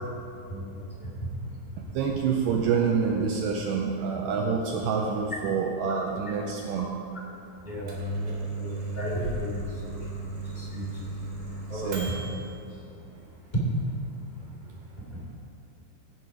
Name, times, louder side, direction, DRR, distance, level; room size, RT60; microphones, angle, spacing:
voice 1, 0.4-1.3 5.9-6.0 7.6-11.9 12.9-13.0 13.5-13.7 14.4-14.5 14.7-14.8 15.1-15.2, right 1 dB, 20° left, -6 dB, 1.3 m, -36 dB
voice 2, 1.5-6.9 11.7-12.5, right 6 dB, 90° right, 1 dB, 1.9 m, -27 dB
Microwave oven, 7.6-12.5, right 2 dB, 70° right, 3.8 m, -35 dB
16.5 x 6.2 x 4.8 m, 2.7 s
omnidirectional pair, 4.5 m